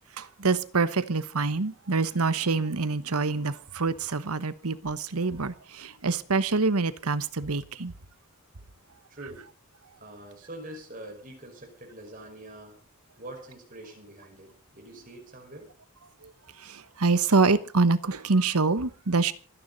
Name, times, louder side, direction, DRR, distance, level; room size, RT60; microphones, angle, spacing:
voice 1, 0.2-7.9 16.2-16.3 16.6-19.3, right 3 dB, 85° right, 1.1 m, -26 dB
voice 2, 9.1-9.5 10.0-12.8 13.2-15.7, right 1 dB, 35° right, 5.3 m, -44 dB
26.5 x 10.0 x 4.0 m
head